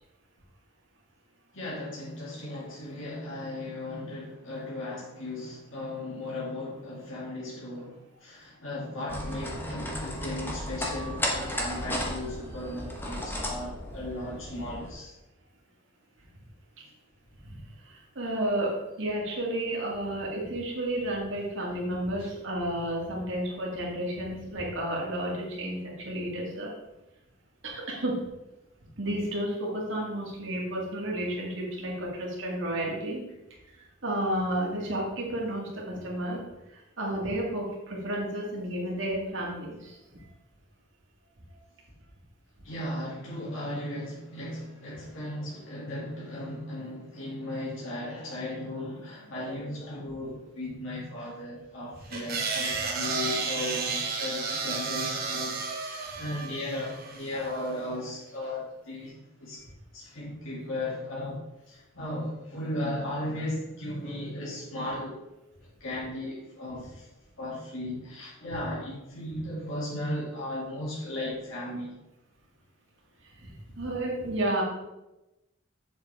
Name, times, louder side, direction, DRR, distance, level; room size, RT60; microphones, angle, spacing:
voice 1, 1.5-15.1 22.2-22.3 42.6-59.6 59.9-61.4 61.7-65.2 65.8-67.0 67.4-71.9, left 1 dB, 75° left, -6 dB, 2.6 m, -36 dB
sound 1, 9.1-14.9, left 1 dB, 10° left, 1.2 m, -34 dB
voice 2, 17.9-26.7 27.6-28.3 29.0-33.2 34.0-36.4 36.7-40.2 73.4-74.6, right 1 dB, 65° right, -3 dB, 2.3 m, -32 dB
sound 2, 52.1-57.5, right 4 dB, 50° right, 1.2 m, -32 dB
7.5 x 7.0 x 3.5 m, 0.97 s
head